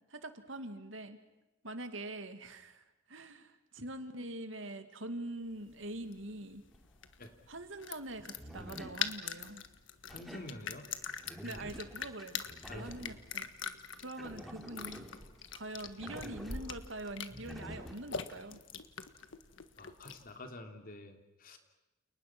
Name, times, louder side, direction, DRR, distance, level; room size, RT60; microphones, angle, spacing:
voice 1, 0.1-1.2 1.6-6.6 7.5-9.7 11.4-12.4 12.7-13.5 14.0-15.1 15.5-18.6, right 1 dB, 75° right, 8 dB, 2.4 m, -44 dB
sound 1, 5.5-20.4, left 7 dB, 70° left, 1.6 m, -44 dB
sound 2, 6.7-6.8 8.1-9.6 10.1-13.3 13.9-18.0, equal, ahead, 3.6 m, -47 dB
voice 2, 10.1-10.9 12.7-12.9 19.8-21.6, left 1 dB, 50° left, 5 dB, 3.2 m, -48 dB
29.5 x 29.5 x 6.2 m, 0.94 s
head